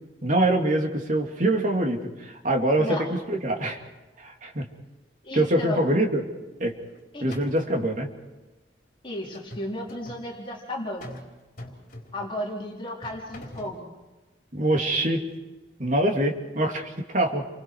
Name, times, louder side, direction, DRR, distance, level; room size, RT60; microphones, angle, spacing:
voice 1, 0.2-3.8 4.2-4.7 5.3-6.2 6.6-6.8 7.2-8.1 14.5-15.2 15.8-17.4, right 1 dB, 45° right, 2 dB, 2.7 m, -24 dB
voice 2, 2.8-3.1 5.2-5.9 7.1-7.3 9.0-11.1 12.1-13.9, left 1 dB, 30° left, -2 dB, 4.1 m, -34 dB
sound 1, 6.9-7.0 7.3-7.8 9.3-10.3 11.0-11.3 11.6-12.3 13.0-13.8, left 1 dB, 50° left, 4.3 m, -43 dB
29.5 x 24.5 x 4.8 m, 1.1 s
head